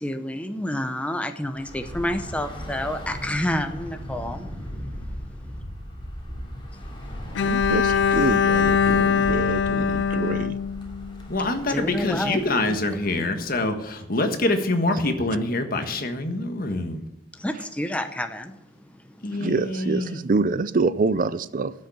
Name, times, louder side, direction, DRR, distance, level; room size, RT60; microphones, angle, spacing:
voice 1, 0.0-4.5 11.7-12.4 12.7-12.8 17.4-18.5, left 1 dB, 5° left, 0.7 m, -28 dB
Bus / Traffic noise roadway noise, 1.6-14.0, equal, 25° left, 3.2 m, -37 dB
Bowed string instrument, 7.3-11.4, left 6 dB, 70° left, 0.4 m, -22 dB
voice 2, 7.3-10.6 17.5-17.7 19.4-21.7, right 3 dB, 45° right, 0.5 m, -26 dB
voice 3, 11.3-17.0 19.2-20.2, left 2 dB, 50° left, 1.4 m, -25 dB
13.0 x 6.6 x 8.6 m
head